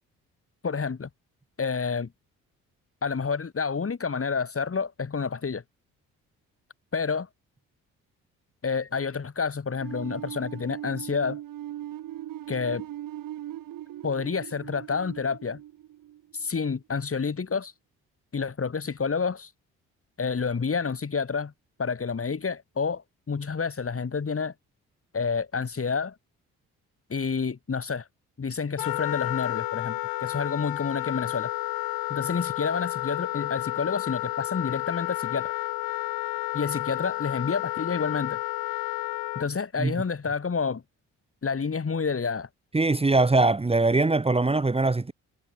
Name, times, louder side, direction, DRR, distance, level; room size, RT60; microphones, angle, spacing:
voice 1, 0.6-1.1 1.6-2.1 3.0-5.6 6.9-7.3 8.6-11.4 12.5-12.9 14.0-15.6 16.3-17.7 18.3-19.5 20.2-21.5 21.8-24.5 25.1-26.1 27.1-28.1 28.4-31.5 32.1-35.5 36.5-38.4 39.3-40.8 41.4-42.5, left 5 dB, 40° left, 4.9 m, -29 dB
sound 1, 9.8-16.7, right 13 dB, 65° right, 1.5 m, -40 dB
Wind instrument woodwind instrument, 28.8-39.4, left 21 dB, 85° left, 1.7 m, -31 dB
voice 2, 42.7-45.1, right 3 dB, 15° right, 1.3 m, -22 dB
supercardioid pair, 55°, 36 cm